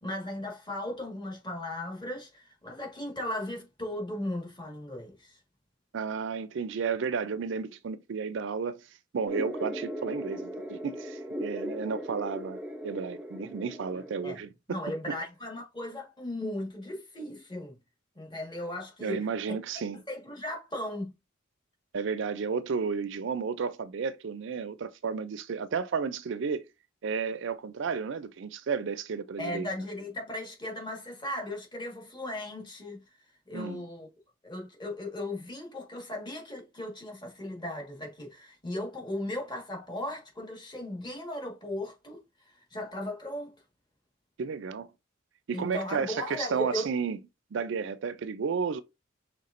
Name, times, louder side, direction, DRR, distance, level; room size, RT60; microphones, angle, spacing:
voice 1, 0.0-5.4 14.2-14.4 14.7-17.8 18.1-19.6 20.1-21.1 29.4-33.0 33.5-34.1 34.4-42.2 42.7-43.6 45.5-46.9, left 1 dB, 20° left, 1.5 m, -37 dB
voice 2, 5.9-8.9 9.1-14.8 15.1-15.2 19.0-20.0 21.9-26.7 27.0-29.7 33.5-33.9 44.4-44.9 45.5-47.2 47.5-48.8, right 5 dB, 65° right, 0.4 m, -32 dB
sound 1, 9.3-14.3, equal, 5° right, 0.5 m, -38 dB
5.7 x 3.4 x 2.5 m
head